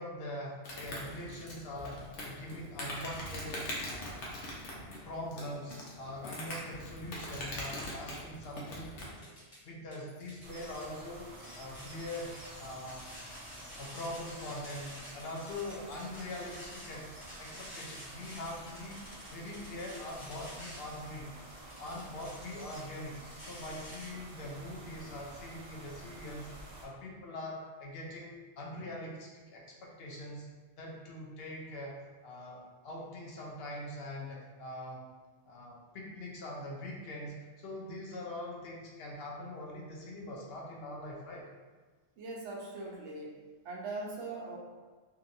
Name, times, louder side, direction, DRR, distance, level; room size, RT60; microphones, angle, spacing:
voice 1, 0.0-2.0 2.2-4.3 4.7-9.3 9.6-13.1 13.8-21.3 21.8-30.5 30.8-35.1 35.5-41.5, left 1 dB, 65° left, -2 dB, 0.8 m, -43 dB
Insect, 0.6-9.2, left 1 dB, 85° left, 1.0 m, -42 dB
sound 1, 8.5-9.6 9.9-24.1, equal, 45° left, 1.0 m, -50 dB
sound 2, 10.4-26.9, right 1 dB, 50° right, 0.4 m, -50 dB
voice 2, 42.2-43.4 43.6-44.6, right 2 dB, 85° right, -2 dB, 1.0 m, -40 dB
2.8 x 2.8 x 2.5 m, 1.4 s
omnidirectional pair, 1.2 m